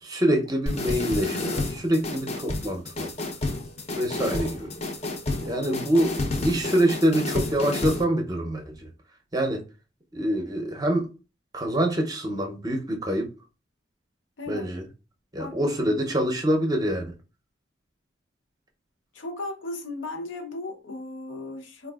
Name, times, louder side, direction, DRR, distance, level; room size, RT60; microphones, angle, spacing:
voice 1, 0.0-3.1 3.9-4.7 5.4-6.1 6.4-8.9 9.3-9.6 10.1-11.1 11.5-13.3 14.5-14.9 15.3-17.1, right 1 dB, 20° right, 0.5 m, -25 dB
sound 1, 0.7-8.0, left 2 dB, 35° left, 0.5 m, -30 dB
voice 2, 5.3-5.8 14.4-14.7 15.4-16.0 19.1-21.9, left 2 dB, 85° left, 0.7 m, -36 dB
4.0 x 2.3 x 2.3 m
head